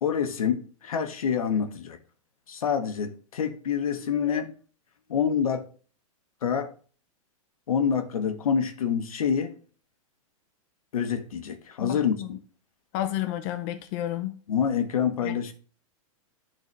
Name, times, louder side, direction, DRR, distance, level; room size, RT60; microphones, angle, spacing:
voice 1, 0.0-2.0 2.5-4.5 5.1-5.7 6.4-6.7 7.7-9.5 10.9-12.4 14.5-15.5, left 7 dB, 85° left, 1.1 m, -27 dB
voice 2, 11.8-12.3 12.9-14.4 15.2-15.4, left 13 dB, 45° left, 0.7 m, -31 dB
11.0 x 4.0 x 3.2 m
hypercardioid pair, 125°, 18 cm